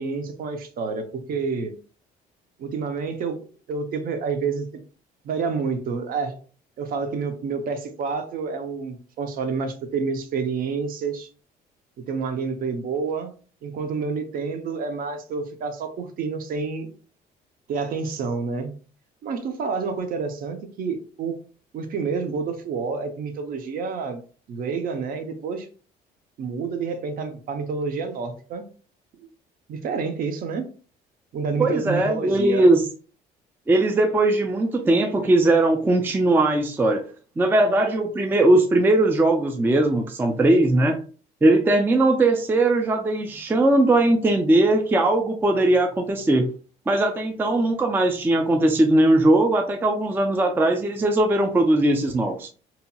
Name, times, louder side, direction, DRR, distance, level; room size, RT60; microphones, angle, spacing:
voice 1, 0.0-1.7 2.6-4.7 5.2-6.4 6.8-11.3 12.0-13.3 13.6-16.9 17.7-18.7 19.2-21.4 21.7-24.2 24.5-25.7 26.4-28.7 29.2-29.3 29.7-30.7 31.3-32.6, right 5 dB, 60° right, 7 dB, 0.6 m, -28 dB
voice 2, 31.6-32.8 33.7-37.1 37.4-41.0 41.4-46.5 46.9-52.5, right 2 dB, 10° right, 4 dB, 0.3 m, -19 dB
2.8 x 2.8 x 2.2 m, 0.39 s
cardioid pair, 110°, 17 cm